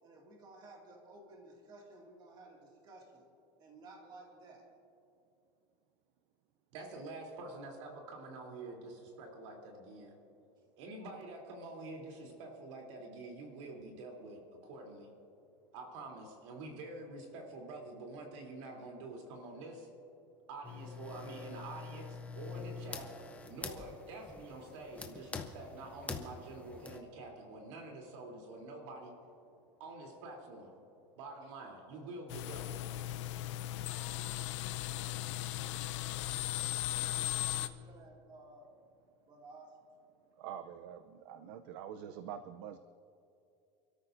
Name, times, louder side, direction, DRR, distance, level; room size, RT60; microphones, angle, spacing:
voice 1, 0.0-3.3 3.6-4.7 31.4-31.5 37.2-38.7 39.2-39.8, right 2 dB, 30° right, 0 dB, 2.2 m, -55 dB
voice 2, 6.7-10.1 10.8-15.1 15.7-19.9 20.5-23.1 23.5-29.1 29.8-30.7 31.1-32.8, right 2 dB, 90° right, 1 dB, 3.2 m, -47 dB
sound 1, 20.6-27.0, left 4 dB, 10° left, 0.7 m, -46 dB
sound 2, 32.3-37.7, left 14 dB, 90° left, 0.6 m, -37 dB
voice 3, 40.4-42.8, right 9 dB, 60° right, 10 dB, 0.6 m, -45 dB
28.5 x 13.5 x 2.6 m, 2.7 s
cardioid pair, 170°, 15 cm